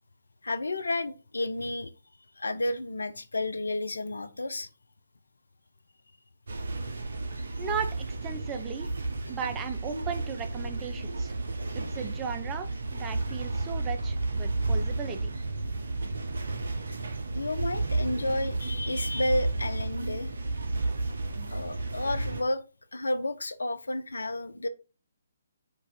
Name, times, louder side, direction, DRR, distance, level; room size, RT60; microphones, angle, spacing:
voice 1, 0.4-1.9 2.4-4.7 17.3-20.3 21.5-22.6 22.9-24.7, left 2 dB, 70° left, 0.5 m, -31 dB
sound 1, 6.5-22.4, right 2 dB, 60° right, 0.7 m, -32 dB
voice 2, 7.6-8.9 9.3-11.3 11.7-15.2, right 6 dB, 15° right, 0.5 m, -36 dB
4.6 x 2.5 x 4.1 m
figure-of-eight pair, 135°, 0 cm